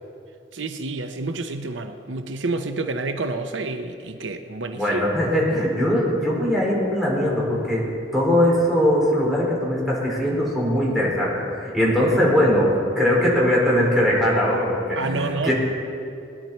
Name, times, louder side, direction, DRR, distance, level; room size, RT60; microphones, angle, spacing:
voice 1, 0.5-5.0 14.9-15.5, right 3 dB, 90° right, 8 dB, 0.8 m, -29 dB
voice 2, 4.7-7.8 8.1-15.5, equal, ahead, -5 dB, 4.1 m, -21 dB
20.0 x 10.5 x 4.4 m, 2.4 s
head